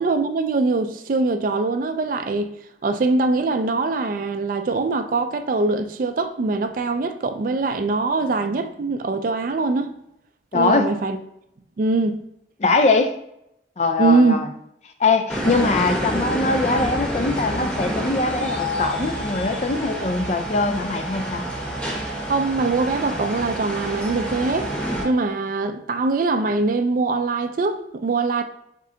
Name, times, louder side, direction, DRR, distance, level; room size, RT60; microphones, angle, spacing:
voice 1, 0.0-2.5 2.8-9.9 10.5-11.2 11.8-12.2 14.0-14.4 22.3-24.7 25.0-28.4, right 3 dB, 45° right, 0.3 m, -22 dB
voice 2, 10.5-10.9 12.6-13.2 13.8-14.5 15.0-21.4, left 3 dB, 35° left, 0.4 m, -22 dB
sound 1, 15.3-25.0, equal, 5° left, 0.7 m, -28 dB
3.7 x 3.2 x 3.8 m
head